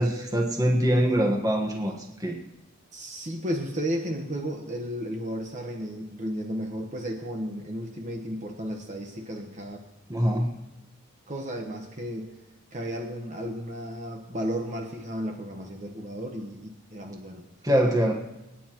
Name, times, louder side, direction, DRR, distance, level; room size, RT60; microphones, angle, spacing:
voice 1, 0.0-2.4 10.1-10.5 17.6-18.1, equal, 15° right, 1 dB, 1.4 m, -23 dB
voice 2, 2.9-9.8 11.3-12.3 12.7-17.5, equal, 35° right, 1 dB, 1.2 m, -33 dB
29.5 x 9.8 x 3.1 m, 0.97 s
head